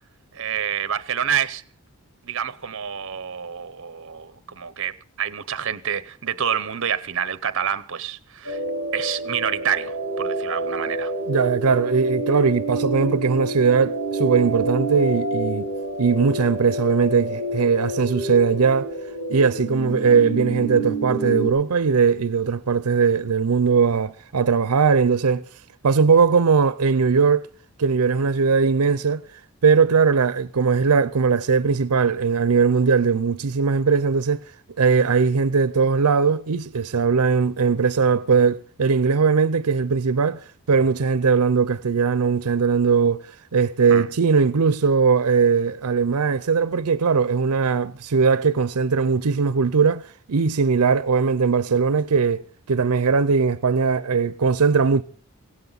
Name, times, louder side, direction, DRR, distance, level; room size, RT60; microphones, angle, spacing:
voice 1, 0.3-1.6 2.2-8.6 8.9-11.1 43.9-44.1, right 8 dB, 60° right, 0.8 m, -28 dB
sound 1, 8.4-21.5, right 1 dB, 60° left, 5.2 m, -28 dB
voice 2, 11.3-15.7 16.0-18.9 19.3-25.5 25.8-27.5 27.8-29.2 29.6-34.5 34.8-40.4 40.7-43.2 43.5-52.4 52.7-55.0, right 5 dB, 90° right, 0.6 m, -19 dB
17.0 x 16.5 x 4.0 m
head